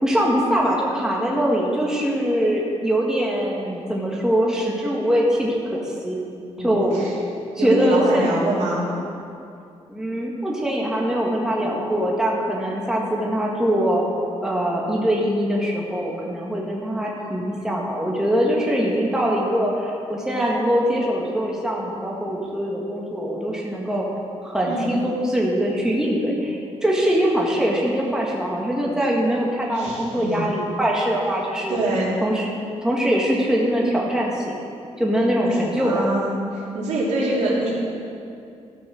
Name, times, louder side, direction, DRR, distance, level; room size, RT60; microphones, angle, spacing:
voice 1, 0.0-6.2 6.6-6.9 7.6-8.3 9.9-14.0 14.4-24.1 24.4-31.8 32.2-32.5 32.8-34.6 35.0-36.0, equal, 5° right, -3 dB, 1.8 m, -22 dB
voice 2, 6.6-7.1 7.6-8.9 24.6-24.9 29.7-30.4 31.7-32.2 35.4-37.7, right 1 dB, 80° right, -6 dB, 3.3 m, -25 dB
13.5 x 6.0 x 6.4 m, 2.5 s
cardioid pair, 100°, 12 cm